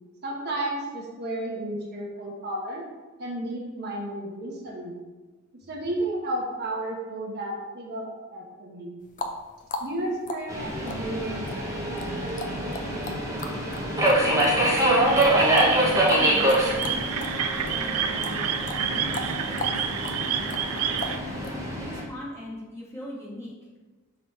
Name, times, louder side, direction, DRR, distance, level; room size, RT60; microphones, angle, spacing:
voice 1, 0.2-2.8 3.2-5.0 5.7-9.0 9.8-12.8, right 1 dB, 50° right, -2 dB, 1.1 m, -33 dB
sound 1, 9.0-17.4 17.7-21.6, left 2 dB, 35° left, 0.6 m, -37 dB
Subway metro underground, 10.5-22.0, right 1 dB, 15° right, 1.1 m, -25 dB
voice 2, 14.4-15.3 15.9-17.0 17.4-21.2 21.8-23.5, left 1 dB, 10° left, -6 dB, 1.6 m, -41 dB
sound 2, 15.1-21.2, right 8 dB, 80° right, 0.5 m, -29 dB
6.4 x 4.0 x 4.4 m, 1.3 s
head